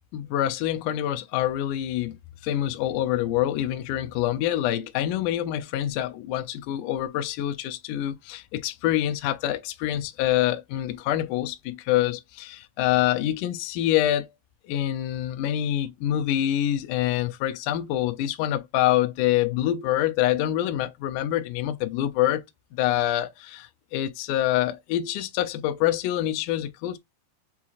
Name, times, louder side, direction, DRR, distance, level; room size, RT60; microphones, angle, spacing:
voice 1, 0.1-14.3 14.6-22.4 22.7-27.0, left 13 dB, 90° left, 1.8 m, -26 dB
7.1 x 2.9 x 2.4 m
omnidirectional pair, 4.3 m